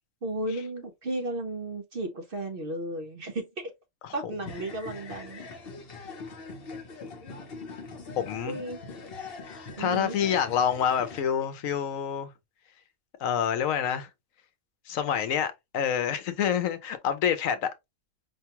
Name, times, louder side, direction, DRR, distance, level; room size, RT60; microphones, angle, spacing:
voice 1, 0.2-3.7 4.1-5.4 8.5-8.8 9.8-10.2, right 1 dB, 50° right, 0.8 m, -34 dB
sound 1, 4.4-11.2, left 4 dB, 50° left, 1.0 m, -42 dB
voice 2, 8.2-8.6 9.8-12.3 13.2-14.1 14.9-17.7, left 8 dB, 75° left, 1.0 m, -27 dB
5.1 x 2.2 x 2.9 m
omnidirectional pair, 1.5 m